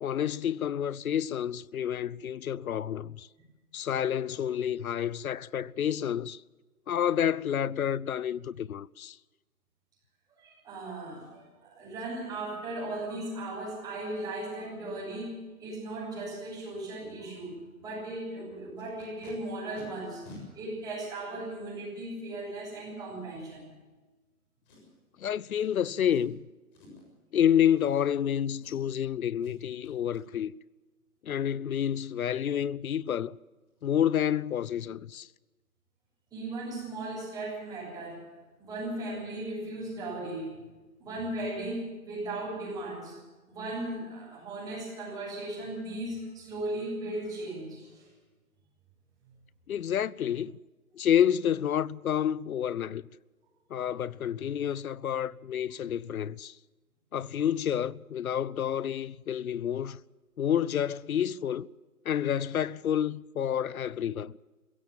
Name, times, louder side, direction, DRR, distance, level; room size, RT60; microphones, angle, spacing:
voice 1, 0.0-3.3 3.7-6.4 6.9-9.2 25.2-26.4 27.3-30.5 31.2-33.4 33.8-35.3 49.7-50.6 50.9-53.0 53.7-56.6 57.1-60.0 60.4-61.7 62.0-64.4, left 9 dB, 70° left, 0.7 m, -29 dB
voice 2, 10.4-23.7 36.3-38.3 38.6-40.6 41.0-43.2 43.5-48.1, right 2 dB, 10° right, 7.6 m, -37 dB
Packing tape duct tape, 18.8-19.3 19.7-19.8 20.2-20.4 21.2-21.3 24.6-25.1 25.6-25.7 26.0-26.3 26.7-27.1 27.7-28.3 28.6-29.0 29.4-29.6 29.8-30.2 33.3-33.4 33.7-33.8 34.2-34.4 34.6-34.9 35.1-35.2, left 2 dB, 30° left, 6.9 m, -52 dB
23.0 x 16.5 x 7.4 m
hypercardioid pair, 155°, 44 cm